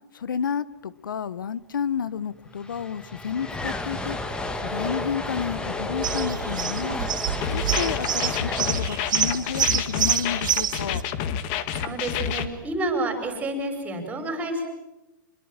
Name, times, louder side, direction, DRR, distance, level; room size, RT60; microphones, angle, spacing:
voice 1, 0.1-4.2 4.6-7.0 7.5-11.0, left 7 dB, 85° left, 18 dB, 1.3 m, -30 dB
sound 1, 2.1-2.2 2.3-10.6, left 2 dB, 10° left, 1.8 m, -32 dB
sound 2, 6.0-11.0, right 9 dB, 75° right, 1.9 m, -27 dB
sound 3, 7.4-12.5, left 9 dB, 35° left, 1.8 m, -29 dB
voice 2, 11.7-14.6, right 2 dB, 15° right, 6 dB, 5.5 m, -29 dB
26.0 x 22.0 x 9.0 m, 0.99 s
hypercardioid pair, 145°, 11 cm